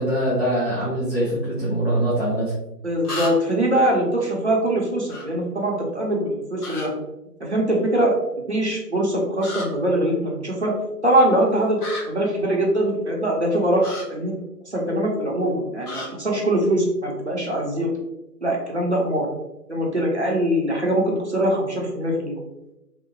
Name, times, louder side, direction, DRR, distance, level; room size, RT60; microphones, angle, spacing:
voice 1, 0.0-2.5, right 1 dB, 40° left, -9 dB, 0.6 m, -23 dB
sound 1, 2.0-2.1 3.0-3.6 5.1-5.2 6.6-6.9 9.4-9.7 11.8-12.0 13.8-14.0 15.8-16.1, left 2 dB, 65° left, 1.0 m, -32 dB
voice 2, 2.8-6.9 7.4-8.2 8.5-10.7 11.0-11.8 12.1-14.3 14.7-17.9 18.4-19.3 19.7-22.4, right 1 dB, 45° right, -2 dB, 0.6 m, -22 dB
2.8 x 2.1 x 2.8 m, 0.94 s
figure-of-eight pair, 170°, 49 cm